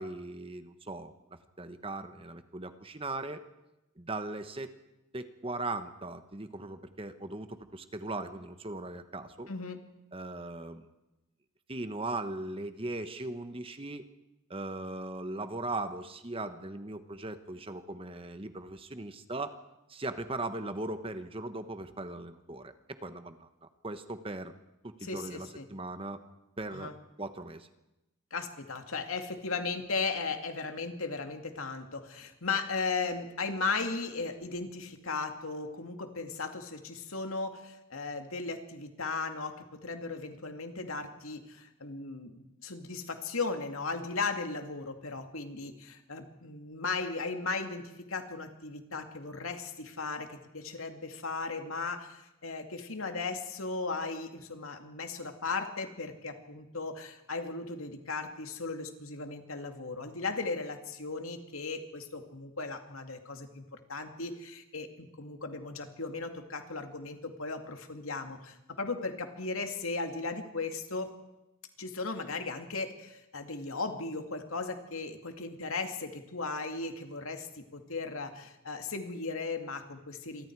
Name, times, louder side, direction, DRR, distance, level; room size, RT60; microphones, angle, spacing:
voice 1, 0.0-3.4 4.0-4.7 5.1-9.5 10.1-10.9 11.7-14.0 14.5-19.6 19.9-24.5 24.8-26.2 26.6-26.9 27.2-27.7, right 2 dB, 25° right, 9 dB, 1.2 m, -39 dB
voice 2, 9.5-9.8 25.0-25.7 26.7-26.9 28.3-71.1 71.8-80.5, left 4 dB, 80° left, 5 dB, 2.4 m, -36 dB
27.5 x 24.0 x 4.8 m, 0.96 s
head